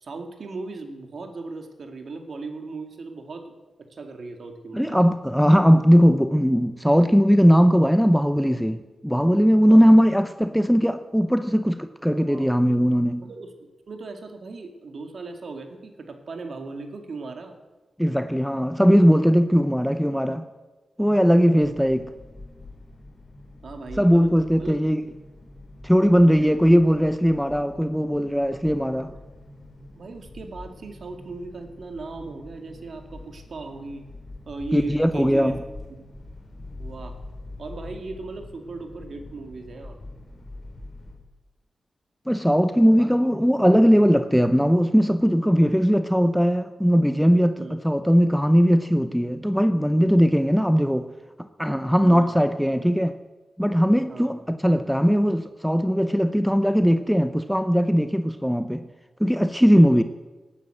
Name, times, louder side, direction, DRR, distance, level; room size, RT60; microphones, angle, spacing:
voice 1, 0.0-3.5 3.8-5.0 9.7-10.0 12.3-12.5 13.2-13.5 13.9-17.6 23.6-24.3 24.6-24.8 26.3-26.7 28.5-28.6 29.0-29.2 29.9-34.1 34.5-35.6 36.0-36.1 36.8-37.2 37.6-40.0 42.9-43.1 47.6-47.8 52.0-52.4 54.1-54.3 59.7-60.0, right 3 dB, 65° right, 5 dB, 2.2 m, -37 dB
voice 2, 4.7-13.3 18.0-20.4 21.0-22.1 24.0-25.0 25.8-29.1 34.7-35.6 42.3-51.1 51.6-53.1 53.6-58.9 59.2-60.0, equal, ahead, 9 dB, 0.7 m, -19 dB
sound 1, 21.6-41.2, left 2 dB, 45° left, 4.1 m, -44 dB
19.0 x 9.8 x 7.8 m, 1.2 s
wide cardioid pair, 85°, 0 cm